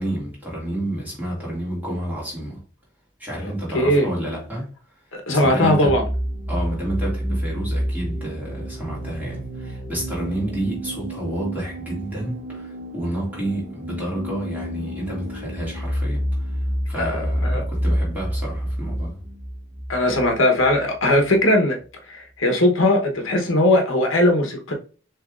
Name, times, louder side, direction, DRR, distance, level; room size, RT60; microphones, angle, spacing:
voice 1, 0.0-2.6 3.2-4.7 5.3-6.0 6.5-19.2, right 1 dB, 10° right, 2.1 m, -30 dB
voice 2, 3.4-4.1 5.1-6.0 16.9-17.6 19.9-24.7, left 1 dB, 80° left, 1.1 m, -19 dB
sound 1, 5.9-21.4, equal, 55° right, 1.2 m, -29 dB
6.0 x 3.2 x 2.5 m
head